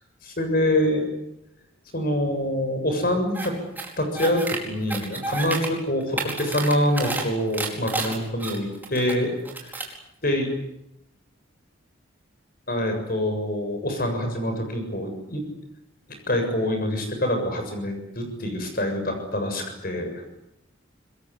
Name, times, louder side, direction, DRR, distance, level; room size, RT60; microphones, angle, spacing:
voice 1, 0.2-1.1 1.9-3.5 4.0-9.3 10.2-10.5 12.7-15.4 16.3-20.2, left 1 dB, 45° left, 5 dB, 7.2 m, -25 dB
sound 1, 3.3-3.5 3.8-4.6 4.9-5.7 6.0-7.2 7.5-9.1 9.4-9.9, right 3 dB, 10° right, 4.8 m, -30 dB
25.5 x 21.5 x 9.8 m, 0.82 s
head